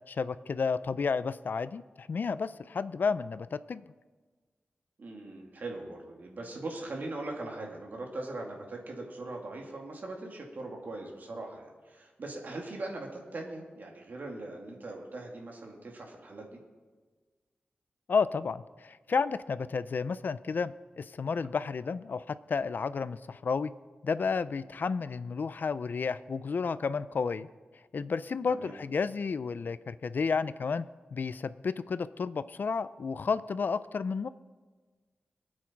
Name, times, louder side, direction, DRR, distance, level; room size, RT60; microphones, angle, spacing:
voice 1, 0.1-3.8 18.1-23.7 24.0-27.5 27.9-30.9 31.1-34.3, left 5 dB, 60° left, 15 dB, 0.5 m, -31 dB
voice 2, 5.0-16.6 28.5-28.7, right 2 dB, 55° right, 0 dB, 2.8 m, -40 dB
24.5 x 8.8 x 4.6 m, 1.4 s
wide cardioid pair, 140°, 4 cm